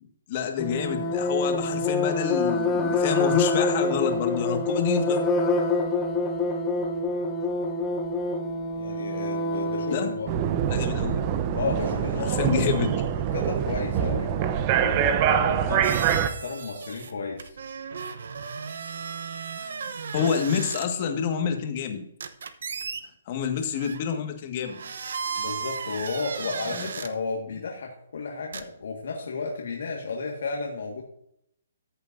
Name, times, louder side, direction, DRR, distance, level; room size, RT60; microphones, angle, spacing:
voice 1, 0.3-5.2 9.9-10.1 10.7-11.2 12.2-12.9 20.1-22.1 23.3-24.8 26.7-26.9, left 7 dB, 40° left, 5 dB, 1.6 m, -28 dB
sound 1, 0.6-10.2, left 2 dB, 15° left, 1.0 m, -26 dB
voice 2, 8.7-10.9 11.5-12.5 13.3-14.3 14.7-16.0 16.4-17.6 25.4-31.0, left 4 dB, 70° left, 0 dB, 1.7 m, -33 dB
sound 2, 10.3-16.3, right 9 dB, 30° right, 0.7 m, -24 dB
sound 3, 15.8-17.1 17.4-20.9 22.2-23.0 23.8-24.0 24.6-27.1 28.5-28.6, right 6 dB, 70° right, 0.8 m, -35 dB
14.0 x 7.0 x 2.6 m, 0.74 s
hypercardioid pair, 145°, 0 cm